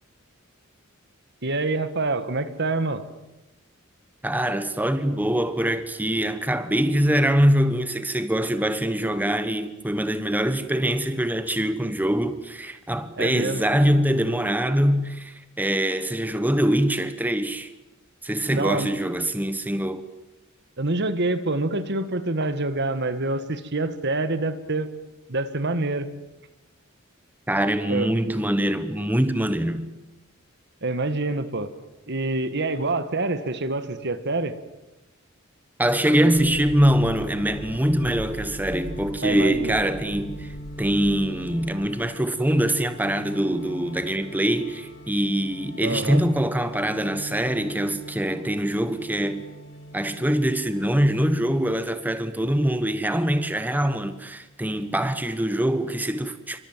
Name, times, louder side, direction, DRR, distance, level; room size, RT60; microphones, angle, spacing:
voice 1, 1.4-3.0 13.2-13.6 18.5-18.9 20.8-24.9 25.3-26.1 27.9-28.1 30.8-31.7 32.1-34.6 36.2-36.3 39.2-39.8 45.8-46.2, right 2 dB, 55° right, 1.8 m, -26 dB
voice 2, 4.2-17.7 18.2-20.0 27.5-29.9 35.8-49.5 49.9-56.6, equal, 10° right, 1.2 m, -23 dB
sound 1, 36.3-51.7, equal, 60° left, 5.6 m, -40 dB
28.5 x 25.0 x 7.5 m
head